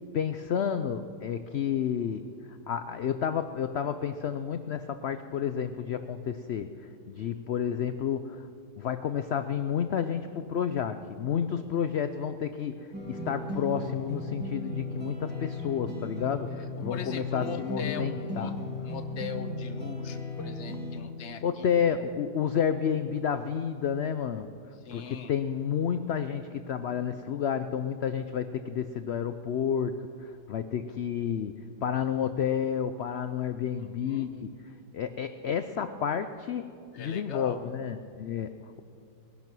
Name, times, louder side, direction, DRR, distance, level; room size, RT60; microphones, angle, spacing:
voice 1, 0.1-2.2 2.7-6.7 7.1-8.5 8.8-18.5 21.4-24.5 24.9-31.6 31.8-34.6 34.9-36.7 37.0-38.8, left 8 dB, 90° left, 10 dB, 0.5 m, -30 dB
sound 1, 12.9-21.0, left 2 dB, 5° right, 2.0 m, -35 dB
voice 2, 16.6-21.8 24.8-25.3 34.0-34.3 36.9-37.6, left 6 dB, 50° left, 8 dB, 1.1 m, -40 dB
20.5 x 11.0 x 6.1 m, 2.5 s
omnidirectional pair, 1.8 m